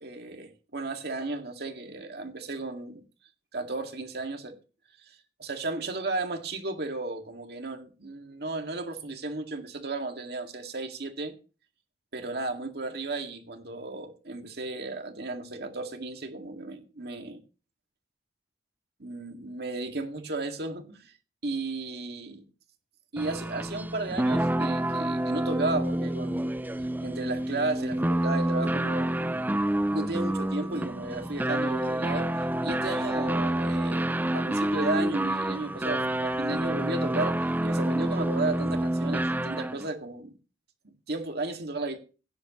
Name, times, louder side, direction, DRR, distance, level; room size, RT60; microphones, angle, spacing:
voice 1, 0.0-3.0 3.5-4.6 5.4-11.3 12.1-17.4 19.0-21.1 21.4-22.4 23.1-26.5 27.0-29.2 29.9-32.3 32.6-40.4 40.8-42.0, right 2 dB, 65° right, 2.1 m, -34 dB
sound 1, 23.2-39.9, right 1 dB, 10° right, 0.4 m, -28 dB
16.0 x 10.0 x 3.1 m
head